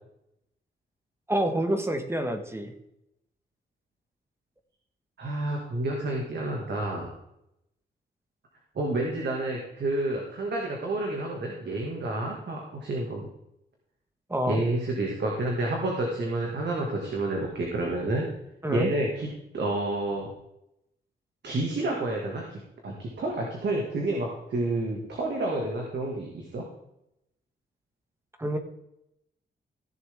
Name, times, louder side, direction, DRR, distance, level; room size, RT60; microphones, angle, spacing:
voice 1, 1.3-2.7 14.3-14.6 18.6-18.9 28.4-28.6, right 1 dB, 15° right, 7 dB, 1.5 m, -27 dB
voice 2, 5.2-7.1 8.8-13.3 14.5-18.3 18.7-20.3 21.4-26.6, right 2 dB, 65° right, -1 dB, 2.1 m, -29 dB
16.0 x 7.0 x 3.6 m, 0.83 s
cardioid pair, 95°, 19 cm